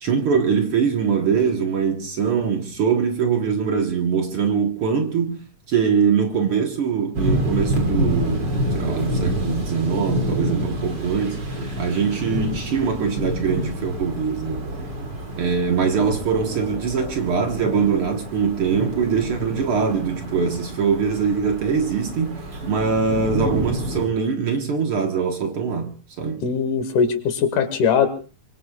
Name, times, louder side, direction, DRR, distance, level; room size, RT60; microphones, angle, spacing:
voice 1, 0.0-5.4 5.7-11.4 11.8-14.6 15.4-25.9 26.2-26.4, right 6 dB, 50° right, 2.0 m, -22 dB
sound 1, 7.1-24.1, equal, 35° right, 3.6 m, -28 dB
voice 2, 26.4-28.1, left 6 dB, 85° left, 3.2 m, -20 dB
25.0 x 23.5 x 2.4 m
omnidirectional pair, 3.5 m